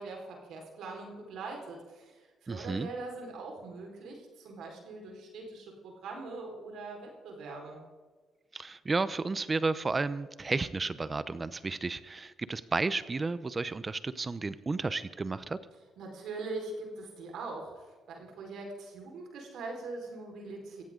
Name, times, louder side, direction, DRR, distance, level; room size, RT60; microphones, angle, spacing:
voice 1, 0.0-7.8 16.0-20.8, right 3 dB, 75° right, 1 dB, 4.6 m, -42 dB
voice 2, 2.5-2.9 8.5-15.6, right 3 dB, 25° right, 15 dB, 0.7 m, -32 dB
16.0 x 16.0 x 3.9 m, 1.4 s
cardioid pair, 90°, 0 cm